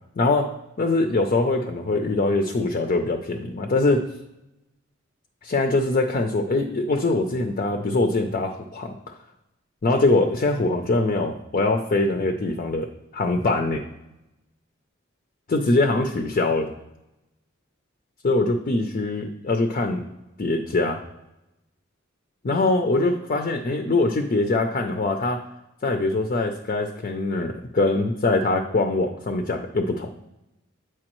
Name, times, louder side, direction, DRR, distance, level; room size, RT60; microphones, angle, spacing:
voice 1, 0.2-0.5 0.8-4.0 5.4-8.9 9.8-13.8 15.5-16.7 18.2-20.1 20.4-21.0 22.4-25.4 25.8-30.1, left 2 dB, 40° left, 5 dB, 0.5 m, -23 dB
8.6 x 4.6 x 3.0 m, 0.92 s
head